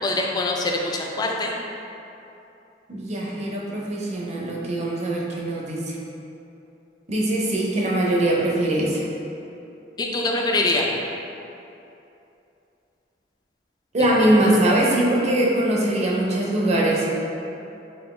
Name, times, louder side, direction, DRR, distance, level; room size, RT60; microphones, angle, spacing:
voice 1, 0.0-1.5 10.0-10.9 14.4-14.5, left 2 dB, 25° left, 0 dB, 0.3 m, -24 dB
voice 2, 2.9-6.0 7.1-9.0 13.9-17.1, right 1 dB, 40° right, -4 dB, 0.5 m, -22 dB
4.3 x 2.4 x 3.1 m, 2.8 s
head